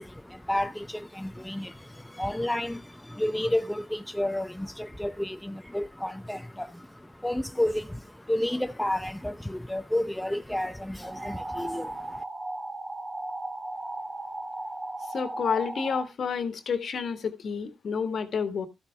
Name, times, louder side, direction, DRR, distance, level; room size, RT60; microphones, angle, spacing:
voice 1, 0.0-12.2, left 1 dB, 10° left, 0.7 m, -31 dB
sound 1, 11.0-16.0, right 2 dB, 30° right, 1.5 m, -36 dB
voice 2, 15.1-18.7, left 6 dB, 60° left, 1.6 m, -30 dB
12.0 x 8.1 x 3.5 m
supercardioid pair, 45°, 0 cm